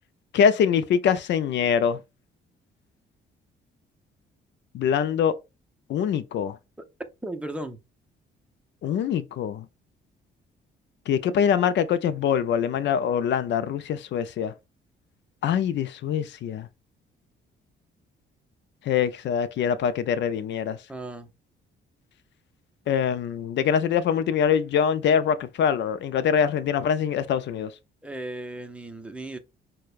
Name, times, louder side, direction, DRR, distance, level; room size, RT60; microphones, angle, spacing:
voice 1, 0.3-2.0 4.7-5.3 5.9-6.6 8.8-9.7 11.1-14.5 15.4-16.7 18.9-20.8 22.9-27.7, left 8 dB, 65° left, 0.5 m, -24 dB
voice 2, 7.2-7.8 20.9-21.3 28.0-29.4, right 1 dB, 5° right, 0.7 m, -35 dB
6.4 x 2.2 x 2.4 m
cardioid pair, 90°, 20 cm